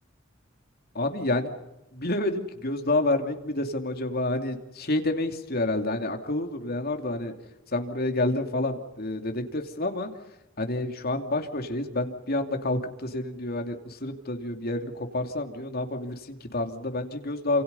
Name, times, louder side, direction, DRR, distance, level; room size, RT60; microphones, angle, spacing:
voice 1, 0.9-1.6 1.9-7.3 7.7-10.1 10.6-17.6, left 2 dB, 50° left, 5 dB, 2.8 m, -29 dB
29.0 x 27.5 x 5.6 m, 0.96 s
head